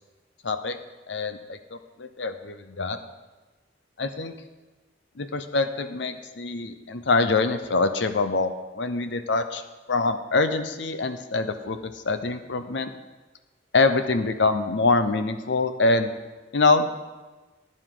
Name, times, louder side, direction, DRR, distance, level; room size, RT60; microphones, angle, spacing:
voice 1, 0.4-0.8 1.1-3.0 4.0-4.3 5.2-9.6 9.9-12.9 13.7-16.1 16.5-16.9, left 3 dB, 70° left, 9 dB, 0.7 m, -24 dB
14.5 x 9.8 x 3.8 m, 1.2 s
head